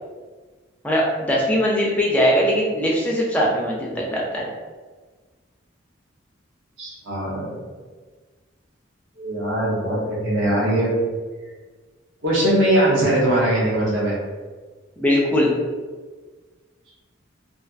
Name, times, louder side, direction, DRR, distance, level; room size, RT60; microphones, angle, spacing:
voice 1, 0.8-4.5 15.0-15.5, equal, 10° left, -4 dB, 0.4 m, -20 dB
voice 2, 6.8-7.6 9.2-10.9 12.2-14.2, right 1 dB, 75° right, -7 dB, 0.7 m, -21 dB
2.4 x 2.4 x 2.3 m, 1.4 s
head